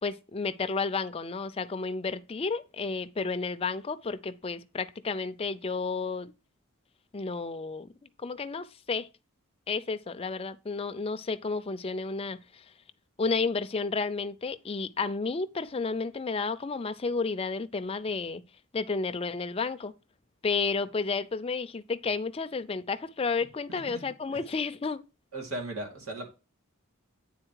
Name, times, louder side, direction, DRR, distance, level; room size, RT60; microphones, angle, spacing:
voice 1, 0.0-6.3 7.1-7.9 8.2-9.1 9.7-12.7 13.2-18.4 18.7-19.9 20.4-25.0, left 4 dB, 25° left, 0.4 m, -31 dB
voice 2, 23.7-24.1 24.3-24.4 25.3-26.3, right 2 dB, 80° right, 2.4 m, -37 dB
8.9 x 4.1 x 4.6 m
head